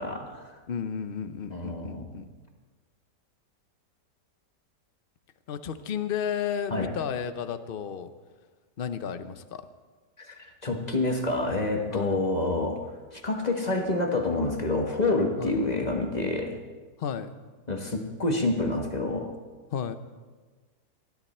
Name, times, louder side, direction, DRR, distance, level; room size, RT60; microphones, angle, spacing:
voice 1, 0.0-0.6 1.5-2.1 6.7-6.9 10.2-12.8 13.1-16.6 17.7-19.3, left 2 dB, 25° left, 3 dB, 1.3 m, -28 dB
voice 2, 0.7-2.2 5.5-8.1 8.8-9.6 11.9-12.2 15.4-15.6 17.0-17.3 19.7-20.0, left 8 dB, 50° left, 10 dB, 0.7 m, -33 dB
20.0 x 13.5 x 4.3 m, 1.4 s
omnidirectional pair, 1.8 m